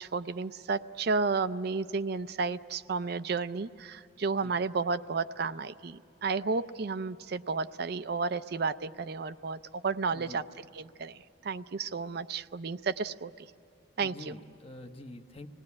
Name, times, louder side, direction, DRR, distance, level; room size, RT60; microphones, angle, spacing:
voice 1, 0.0-10.4 10.7-13.5 14.0-14.3, right 4 dB, 55° right, 12 dB, 0.5 m, -32 dB
voice 2, 10.1-10.4 14.0-15.5, left 1 dB, 30° left, 6 dB, 1.0 m, -46 dB
25.5 x 19.0 x 9.7 m, 2.8 s
head